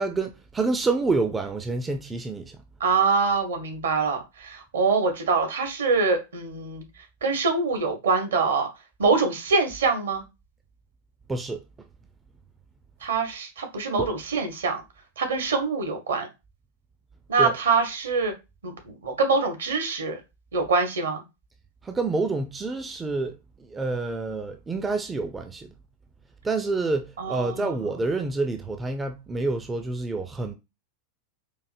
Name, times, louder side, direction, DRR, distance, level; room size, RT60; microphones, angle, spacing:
voice 1, 0.0-2.6 11.3-11.6 14.0-14.1 17.4-17.5 21.8-23.4 23.7-25.7 26.4-30.5, right 3 dB, 15° right, 0.4 m, -28 dB
voice 2, 2.8-6.8 7.2-8.7 9.0-10.2 13.0-14.8 15.2-16.3 17.3-18.3 18.6-20.2 20.5-21.2 27.2-27.7, right 4 dB, 65° right, 1.0 m, -24 dB
4.7 x 2.5 x 2.5 m
figure-of-eight pair, 90°, 0 cm